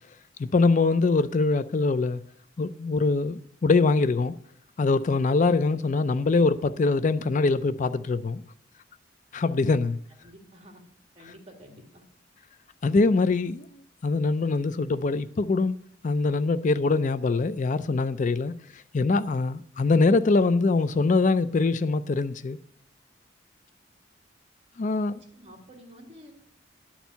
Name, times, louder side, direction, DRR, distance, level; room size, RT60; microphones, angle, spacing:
voice 1, 0.4-2.2 2.6-4.4 4.8-8.4 9.3-10.0 12.8-13.7 14.0-15.8 16.0-22.6 24.8-25.2, left 3 dB, 40° left, 0.4 m, -23 dB
voice 2, 10.2-10.8 11.1-12.0 25.0-26.3, equal, 35° right, 2.3 m, -50 dB
11.5 x 4.4 x 8.1 m
head